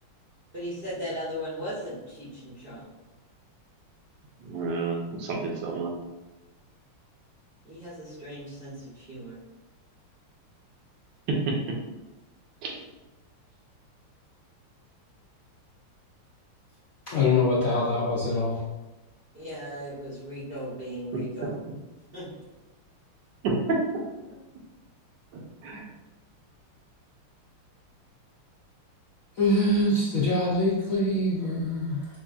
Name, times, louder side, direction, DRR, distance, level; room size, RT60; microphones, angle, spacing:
voice 1, 0.5-2.9 7.6-9.4 19.3-21.6 22.1-22.3, equal, 50° right, -8 dB, 0.7 m, -37 dB
voice 2, 4.4-5.9 11.3-11.8 12.6-12.8 21.1-21.2 23.4-23.8 25.3-25.9, right 3 dB, 70° right, 0 dB, 1.2 m, -29 dB
voice 3, 17.1-18.6 25.7-25.8 29.4-32.1, left 2 dB, 75° left, -7 dB, 0.7 m, -24 dB
5.4 x 2.5 x 2.4 m, 1.0 s
omnidirectional pair, 2.3 m